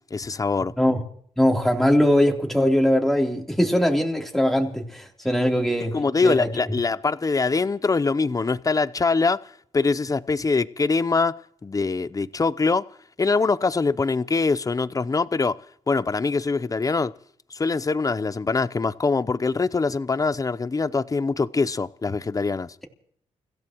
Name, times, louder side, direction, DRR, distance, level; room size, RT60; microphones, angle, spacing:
voice 1, 0.1-0.7 5.9-9.4 9.7-11.4 11.6-12.8 13.2-15.6 15.9-17.1 17.5-22.7, left 4 dB, 30° left, 0.7 m, -23 dB
voice 2, 1.4-5.9 6.2-6.5, equal, ahead, 3.5 m, -21 dB
30.0 x 15.5 x 3.1 m
cardioid pair, 70°, 13 cm